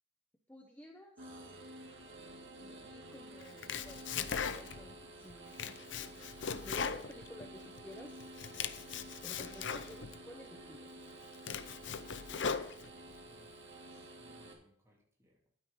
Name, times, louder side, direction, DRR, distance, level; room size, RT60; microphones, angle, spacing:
voice 1, 0.5-1.8 2.6-6.2 6.6-8.2 9.2-10.9, left 1 dB, 10° left, 2 dB, 0.9 m, -54 dB
sound 1, 1.2-14.5, right 1 dB, 70° right, 2.3 m, -51 dB
Domestic sounds home sounds, 3.4-4.9 5.3-7.8 8.2-10.2 10.7-10.8 11.2-13.2, left 6 dB, 65° left, 0.7 m, -39 dB
voice 2, 12.5-15.5, equal, 15° right, -2 dB, 3.1 m, -67 dB
11.5 x 9.6 x 3.8 m, 0.69 s
head